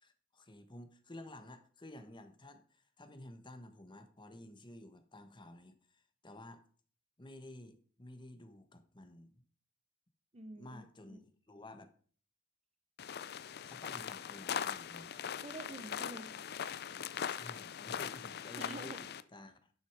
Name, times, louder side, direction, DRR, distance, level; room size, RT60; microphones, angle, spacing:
voice 1, 0.0-6.6 7.2-9.4 10.5-11.9 13.7-15.2 17.3-19.7, left 1 dB, 25° left, 8 dB, 1.2 m, -52 dB
voice 2, 10.3-11.2 15.4-16.5 18.6-19.0, right 2 dB, 35° right, 10 dB, 1.0 m, -48 dB
sound 1, 13.0-19.2, left 8 dB, 55° left, 0.5 m, -41 dB
10.5 x 6.4 x 4.8 m, 0.43 s
head